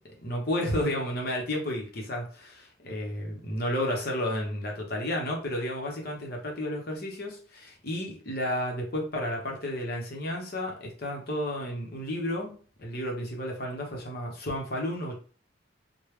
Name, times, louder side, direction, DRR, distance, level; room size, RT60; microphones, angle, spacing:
voice 1, 0.2-12.5 12.8-15.1, left 1 dB, 50° left, 0 dB, 0.9 m, -32 dB
3.2 x 2.2 x 3.2 m, 0.39 s
head